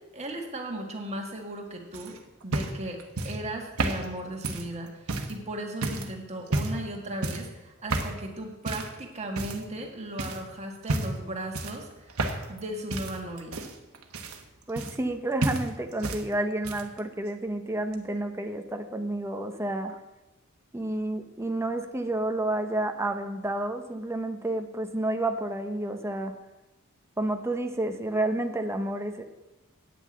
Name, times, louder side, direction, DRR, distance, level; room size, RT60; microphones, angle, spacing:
voice 1, 0.1-2.1 2.4-3.0 3.2-12.2 12.5-13.6, right 1 dB, 30° right, 1 dB, 1.8 m, -36 dB
sound 1, 1.9-5.4 5.8-6.1 6.5-6.9 7.2-7.5 7.9-8.2 8.7-9.0 9.4-9.9 10.2-10.4 10.8-11.2 11.5-12.6 12.9-15.2 15.4-16.2 16.5-17.0 17.9-18.0, right 2 dB, 85° right, 1.2 m, -31 dB
voice 2, 14.7-20.0 20.7-26.3 27.2-29.3, right 1 dB, 10° right, 5 dB, 0.7 m, -30 dB
9.3 x 6.1 x 8.5 m, 1.0 s
head